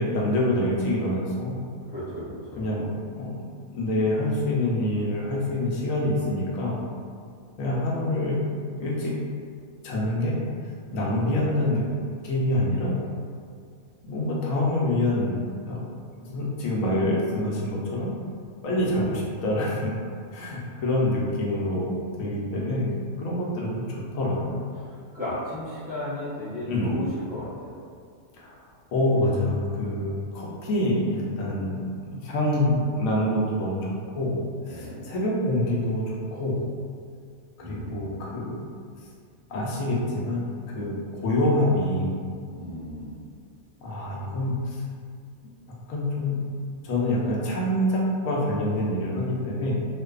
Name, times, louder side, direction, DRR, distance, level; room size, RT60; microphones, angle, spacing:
voice 1, 0.0-1.6 2.6-2.9 3.2-3.4 3.7-6.8 7.6-8.4 8.8-9.2 9.8-10.4 10.9-11.8 12.2-13.0 14.0-15.8 16.2-18.1 18.6-19.9 20.3-24.6 26.7-26.9 28.4-28.6 28.9-31.8 32.2-34.3 34.7-36.6 37.6-38.6 39.5-42.1 43.8-44.8 45.9-46.4 46.8-49.8, left 1 dB, 75° left, -4 dB, 1.0 m, -26 dB
voice 2, 1.9-2.7 18.7-19.1 24.7-27.7 34.7-35.0 37.6-38.3 42.5-43.2, left 1 dB, 10° right, -12 dB, 0.4 m, -35 dB
2.5 x 2.3 x 2.3 m, 2.1 s
omnidirectional pair, 1.5 m